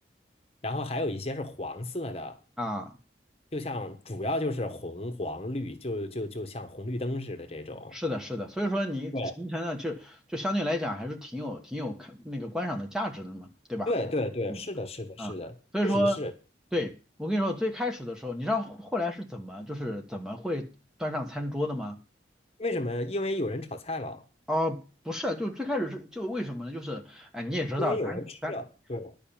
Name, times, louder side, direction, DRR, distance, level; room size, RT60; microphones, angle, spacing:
voice 1, 0.6-2.4 3.5-8.0 9.1-9.3 13.9-15.5 15.8-16.3 16.7-16.8 22.6-24.2 27.8-29.1, left 1 dB, 35° left, 1.3 m, -33 dB
voice 2, 2.6-2.9 7.9-13.9 14.5-14.6 15.2-15.4 15.7-16.2 16.7-16.9 17.2-20.7 21.0-22.0 24.5-28.5, left 1 dB, 5° right, 1.4 m, -31 dB
11.0 x 5.7 x 8.8 m
head